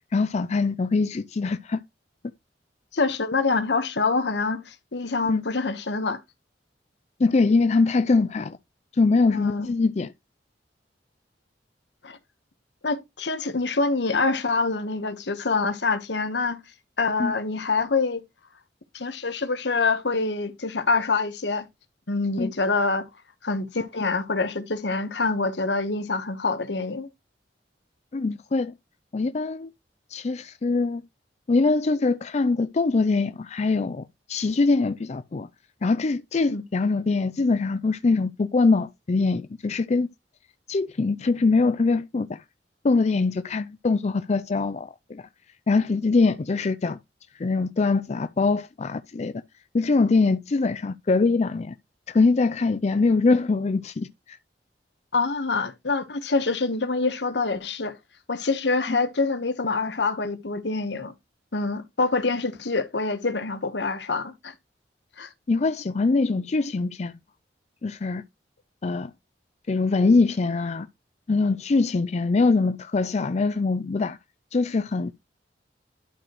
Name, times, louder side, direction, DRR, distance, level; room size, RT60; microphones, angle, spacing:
voice 1, 0.1-1.8 5.3-5.4 7.2-8.6 9.0-10.1 17.2-17.3 22.4-22.5 28.1-28.7 29.1-29.7 30.1-31.0 31.5-35.5 35.8-40.1 40.7-42.4 42.8-45.2 45.7-47.0 47.4-49.3 49.7-51.7 52.1-54.4 58.9-59.0 65.5-67.2 67.8-68.2 68.8-69.1 69.7-70.9 71.3-74.2 74.5-75.1, left 3 dB, 40° left, 0.4 m, -23 dB
voice 2, 2.9-6.2 9.3-9.7 12.0-12.2 12.8-16.6 17.0-18.2 18.9-21.7 22.1-23.1 23.4-27.1 36.5-36.6 55.1-58.0 58.3-61.1 61.5-64.5 65.2-65.3, left 3 dB, 80° left, 1.2 m, -26 dB
12.0 x 4.9 x 3.0 m
head